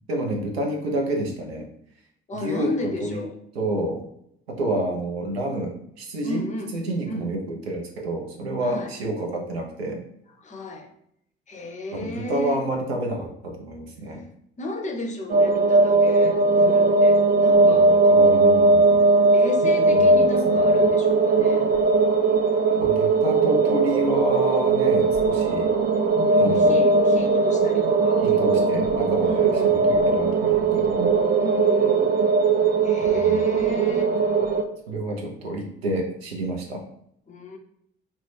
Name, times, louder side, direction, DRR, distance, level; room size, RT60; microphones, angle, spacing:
voice 1, 0.1-1.7 2.3-3.2 3.5-4.0 4.5-6.4 6.7-10.0 11.9-14.2 17.7-19.0 19.9-20.1 20.5-20.8 22.8-25.7 26.4-26.8 28.2-31.1 33.0-33.6 34.9-36.8, right 1 dB, 85° right, 1 dB, 0.5 m, -29 dB
voice 2, 2.3-3.4 6.2-6.8 7.1-7.3 8.6-8.9 10.4-10.9 11.5-12.6 14.6-17.9 19.3-21.7 26.3-28.8 29.2-29.8 31.4-32.1 32.8-34.1 37.3-37.6, left 2 dB, 25° left, 3 dB, 0.5 m, -34 dB
sound 1, 15.3-34.6, right 3 dB, 30° right, 0.4 m, -19 dB
2.3 x 2.1 x 3.1 m, 0.72 s
figure-of-eight pair, 50°, 30 cm